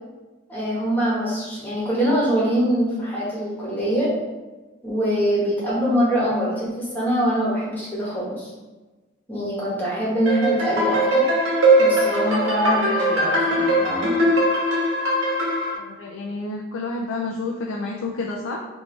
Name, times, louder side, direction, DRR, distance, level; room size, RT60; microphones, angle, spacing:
voice 1, 0.5-4.1 4.8-8.5 9.3-11.3 11.8-14.1, equal, 10° left, -7 dB, 1.2 m, -23 dB
sound 1, 10.3-15.7, right 1 dB, 85° right, 1.2 m, -20 dB
voice 2, 15.8-18.7, left 3 dB, 90° left, -1 dB, 0.4 m, -29 dB
4.5 x 2.7 x 3.2 m, 1.2 s
head